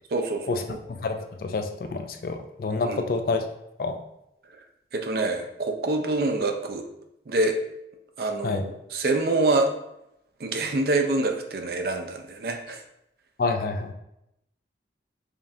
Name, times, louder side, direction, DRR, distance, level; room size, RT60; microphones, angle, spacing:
voice 1, 0.1-0.8 2.8-3.0 4.9-6.9 7.3-7.6 8.2-9.7 10.4-12.8, right 2 dB, 55° right, 4 dB, 0.4 m, -26 dB
voice 2, 1.0-3.4 3.8-4.0 8.4-8.6 13.4-13.9, left 3 dB, 50° left, 6 dB, 0.3 m, -28 dB
5.0 x 2.5 x 2.6 m, 0.83 s
head